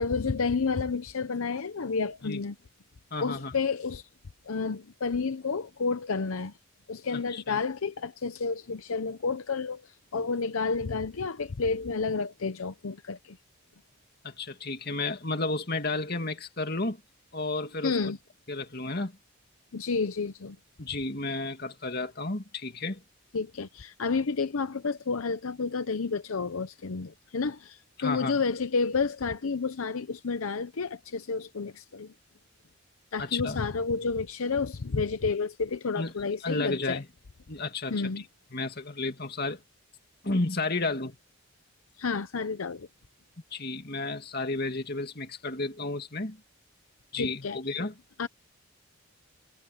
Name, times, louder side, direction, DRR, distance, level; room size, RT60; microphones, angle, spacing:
voice 1, 0.0-2.6 3.2-4.1 4.4-6.5 6.9-13.4 17.8-18.2 19.7-20.6 23.3-32.1 33.1-37.0 37.9-38.2 42.0-42.9 47.1-47.6 48.2-48.3, left 4 dB, 75° left, 0.7 m, -30 dB
voice 2, 3.1-3.5 7.1-7.6 14.2-17.0 17.3-18.1 18.5-19.1 20.8-23.0 28.0-28.4 33.2-33.6 36.0-36.1 36.4-37.1 37.5-38.0 38.5-39.6 40.2-41.2 43.5-46.4 47.1-47.9, left 3 dB, 45° left, 2.5 m, -32 dB
head